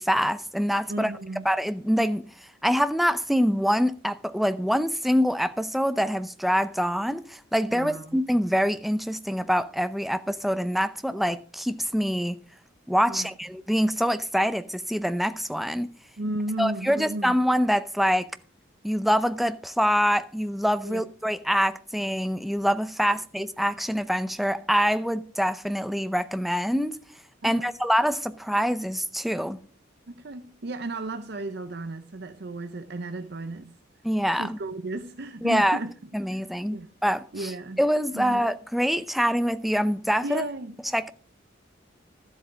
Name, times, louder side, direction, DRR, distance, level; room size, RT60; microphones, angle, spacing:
voice 1, 0.0-1.1 1.4-2.3 2.6-12.4 12.9-15.9 16.6-18.3 18.8-27.0 27.4-29.6 34.0-34.6 35.4-35.8 36.1-37.5 37.8-40.5 40.9-41.1, equal, ahead, 0.6 m, -25 dB
voice 2, 0.9-1.5 7.7-8.2 13.0-13.3 16.2-17.3 20.8-21.0 27.4-27.7 30.1-33.8 34.3-35.9 36.3-36.5 36.7-36.9 37.3-37.8 38.1-38.4 40.2-40.8, right 2 dB, 55° right, 0.6 m, -34 dB
12.5 x 7.9 x 5.1 m
head